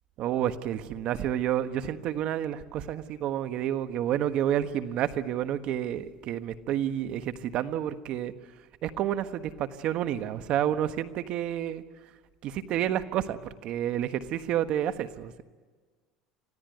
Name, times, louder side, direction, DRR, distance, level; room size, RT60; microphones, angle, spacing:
voice 1, 0.2-8.3 8.8-11.8 12.4-15.5, right 11 dB, 55° right, 11 dB, 1.4 m, -30 dB
26.0 x 16.5 x 9.3 m, 1.4 s
supercardioid pair, 125°, 2 cm